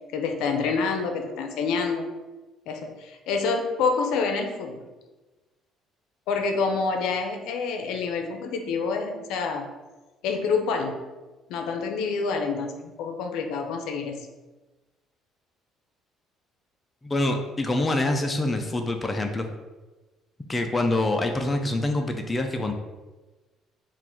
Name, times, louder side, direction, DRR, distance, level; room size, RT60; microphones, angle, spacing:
voice 1, 0.1-2.1 2.7-4.8 6.3-9.7 10.2-11.0 11.5-14.3, left 4 dB, 80° left, 4 dB, 0.5 m, -27 dB
voice 2, 17.0-19.5 20.5-22.7, left 2 dB, 15° left, 4 dB, 0.4 m, -25 dB
3.8 x 2.5 x 4.4 m, 1.2 s
cardioid pair, 115°, 0 cm